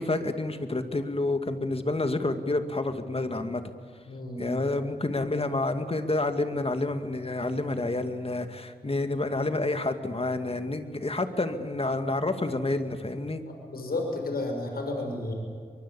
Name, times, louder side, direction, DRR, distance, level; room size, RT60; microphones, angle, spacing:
voice 1, 0.0-3.6 4.4-13.4, left 2 dB, 40° left, 8 dB, 2.2 m, -29 dB
voice 2, 4.1-4.6 13.5-15.3, left 2 dB, 75° left, 3 dB, 6.3 m, -32 dB
23.5 x 23.0 x 8.5 m, 2.1 s
cardioid pair, 55°, 16 cm